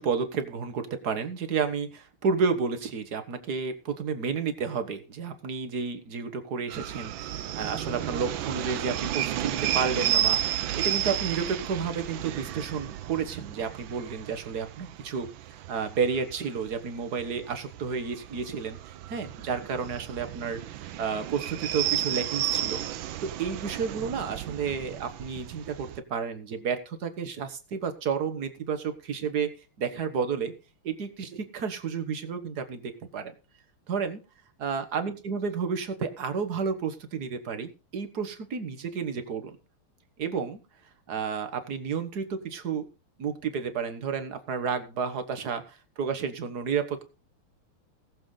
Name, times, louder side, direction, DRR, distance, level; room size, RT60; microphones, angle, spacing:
voice 1, 0.0-22.8 23.2-30.5 30.8-33.3 33.9-34.2 34.6-39.6 40.2-40.6 41.1-42.9 43.2-47.0, right 6 dB, 50° right, 8 dB, 1.7 m, -31 dB
sound 1, 6.7-26.0, right 11 dB, 70° right, 1.4 m, -33 dB
18.5 x 7.2 x 3.8 m, 0.32 s
omnidirectional pair, 2.4 m